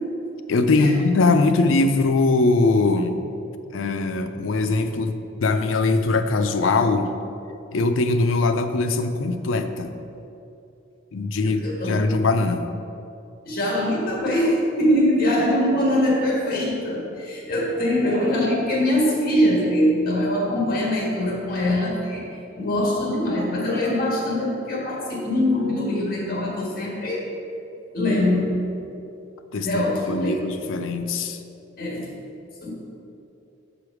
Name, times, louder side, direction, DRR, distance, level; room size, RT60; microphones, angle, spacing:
voice 1, 0.5-3.2 3.7-7.1 7.7-9.9 11.1-12.7 29.5-31.4, left 3 dB, 75° left, 8 dB, 0.5 m, -21 dB
voice 2, 11.4-12.0 13.4-22.3 22.6-27.3 27.9-28.6 29.5-30.4 31.8-32.1 32.6-32.7, left 1 dB, 50° left, -2 dB, 1.7 m, -23 dB
7.0 x 5.0 x 4.8 m, 2.7 s
head